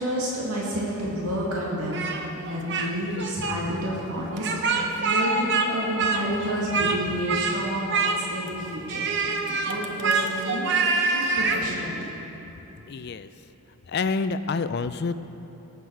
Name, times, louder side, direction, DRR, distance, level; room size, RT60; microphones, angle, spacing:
voice 1, 0.0-2.0 2.3-12.1, equal, 85° right, -5 dB, 2.2 m, -30 dB
Speech, 1.9-2.9 3.2-3.6 4.4-5.7 6.0-7.0 7.3-7.6 7.9-8.5 8.9-11.6, right 4 dB, 50° right, 0.9 m, -25 dB
voice 2, 12.9-13.3 13.9-15.2, left 4 dB, 45° left, 12 dB, 0.4 m, -27 dB
18.5 x 8.2 x 4.6 m, 3.0 s
head